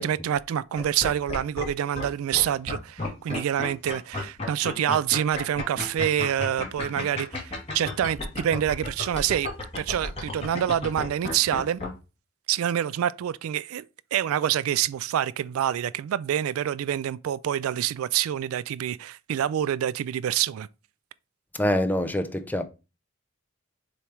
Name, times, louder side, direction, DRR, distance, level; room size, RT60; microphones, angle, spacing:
voice 1, 0.0-9.5 9.8-11.8 12.5-13.8 14.1-20.7, right 10 dB, 80° right, 0.3 m, -27 dB
sound 1, 0.7-2.0 2.3-11.9, left 2 dB, 30° left, 2.1 m, -32 dB
voice 2, 21.5-22.6, left 1 dB, 10° left, 0.5 m, -25 dB
6.8 x 3.2 x 4.5 m
head